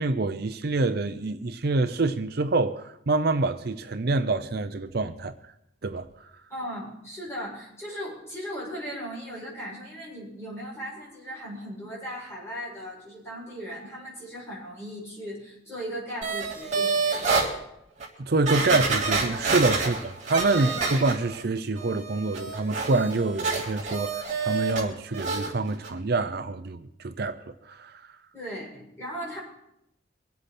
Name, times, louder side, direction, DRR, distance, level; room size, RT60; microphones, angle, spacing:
voice 1, 0.0-5.3 5.8-6.1 18.2-20.0 20.3-27.4 27.7-28.0, right 3 dB, 55° right, 0.7 m, -26 dB
voice 2, 6.5-17.5 19.8-19.9 20.5-20.7 28.3-29.4, equal, 15° left, 6.6 m, -37 dB
sound 1, 16.2-17.5 18.0-18.1 18.5-21.4 21.8-24.8 25.1-25.5 25.8-25.9, right 4 dB, 40° right, 3.1 m, -28 dB
25.0 x 8.3 x 4.3 m
head